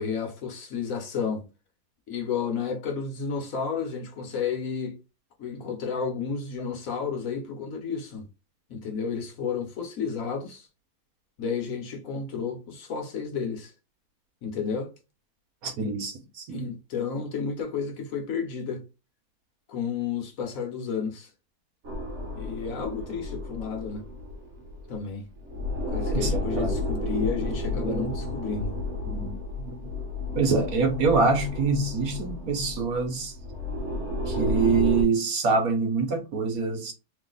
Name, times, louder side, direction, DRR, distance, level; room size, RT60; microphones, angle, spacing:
voice 1, 0.0-1.4 2.1-5.0 5.4-8.2 8.7-10.7 11.4-13.7 14.4-14.9 16.5-18.9 19.7-21.3 22.3-24.0 24.9-25.3 25.9-28.8, left 6 dB, 70° left, 1.4 m, -31 dB
voice 2, 15.6-16.7 26.1-26.8 27.2-27.3 27.7-28.3 29.1-29.3 29.6-29.9 30.3-33.3 34.3-36.9, right 4 dB, 75° right, 1.4 m, -25 dB
sound 1, 21.8-25.0 25.3-35.0, left 1 dB, 55° right, 1.3 m, -32 dB
3.2 x 2.8 x 3.8 m
omnidirectional pair, 1.5 m